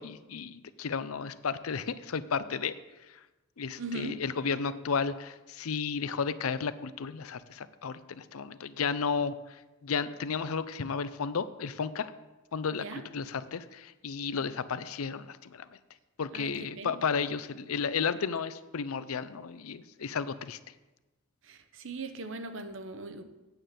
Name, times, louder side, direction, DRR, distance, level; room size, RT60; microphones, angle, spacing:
voice 1, 0.0-2.7 3.6-12.1 12.5-15.7 16.2-20.6, left 5 dB, 80° left, 14 dB, 0.6 m, -33 dB
voice 2, 3.8-4.2 12.7-13.0 16.3-17.0 21.4-23.2, right 2 dB, 60° right, 9 dB, 0.9 m, -39 dB
8.9 x 7.6 x 6.6 m, 1.1 s
head